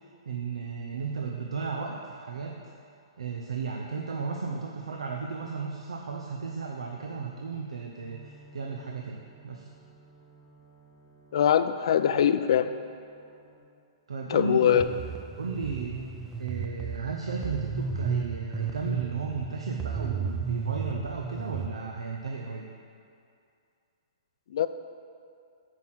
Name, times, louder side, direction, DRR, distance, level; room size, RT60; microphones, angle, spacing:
voice 1, 0.3-2.6 3.2-9.7 14.1-15.0 15.4-16.0 16.4-22.7, right 5 dB, 90° right, 0 dB, 0.7 m, -34 dB
sound 1, 8.0-13.6, right 2 dB, 40° right, 1.9 m, -55 dB
voice 2, 11.3-12.7 14.3-14.9 24.5-24.7, left 9 dB, 65° left, 11 dB, 0.4 m, -22 dB
sound 2, 14.8-21.7, right 6 dB, 15° right, 0.6 m, -34 dB
8.3 x 4.9 x 5.7 m, 2.5 s
hypercardioid pair, 140°, 3 cm